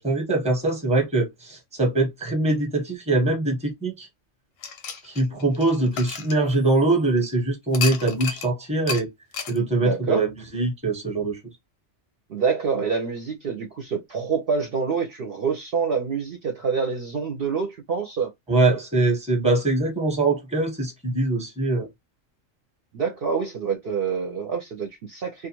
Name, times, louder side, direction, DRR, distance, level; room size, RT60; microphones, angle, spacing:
voice 1, 0.0-4.1 5.0-9.1 9.5-11.4 18.5-21.9, right 2 dB, 5° right, 0.8 m, -23 dB
sound 1, 4.6-7.0 7.7-8.5 8.9-9.0 9.3-9.6, left 6 dB, 90° left, 1.0 m, -32 dB
voice 2, 9.7-10.3 12.3-18.3 22.9-25.5, right 5 dB, 60° right, 0.7 m, -26 dB
2.4 x 2.4 x 2.9 m
omnidirectional pair, 1.3 m